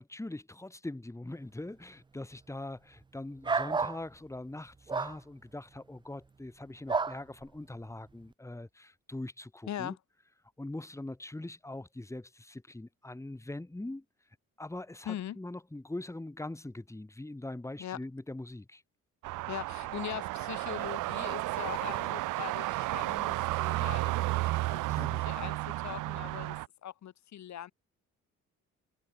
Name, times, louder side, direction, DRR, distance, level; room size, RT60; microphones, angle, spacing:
voice 1, 0.0-10.0 10.6-14.0 14.6-18.8 24.9-25.2, left 2 dB, 10° left, 2.6 m, -42 dB
sound 1, 3.4-4.0 4.9-5.1 6.9-7.2, right 4 dB, 15° right, 0.4 m, -30 dB
voice 2, 15.1-15.4 17.8-18.0 19.5-27.7, left 11 dB, 65° left, 2.6 m, -41 dB
sound 2, 19.2-26.7, right 19 dB, 90° right, 0.7 m, -33 dB
cardioid pair, 90°, 30 cm